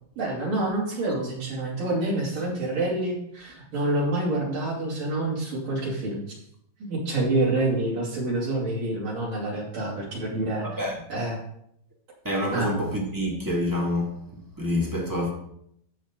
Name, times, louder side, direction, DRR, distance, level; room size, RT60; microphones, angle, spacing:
voice 1, 0.2-6.4 6.8-10.8 11.1-11.4 12.5-12.7, right 2 dB, 55° right, 4.2 m, -27 dB
voice 2, 10.6-11.0 12.2-14.2 14.6-15.3, left 1 dB, 20° right, 0.5 m, -27 dB
13.0 x 8.3 x 3.8 m
omnidirectional pair, 4.6 m